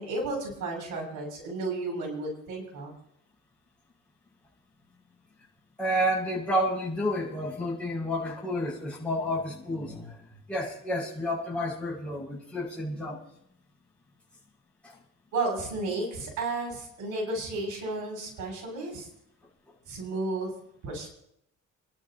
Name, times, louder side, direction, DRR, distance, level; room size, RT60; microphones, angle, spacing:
voice 1, 0.0-2.9 15.3-19.1 19.9-20.5 20.8-21.1, right 2 dB, 85° right, -2 dB, 7.0 m, -33 dB
voice 2, 5.8-10.2 10.5-13.2 14.8-14.9, equal, 5° left, -7 dB, 6.5 m, -30 dB
29.0 x 11.5 x 3.0 m, 0.76 s
cardioid pair, 90°, 30 cm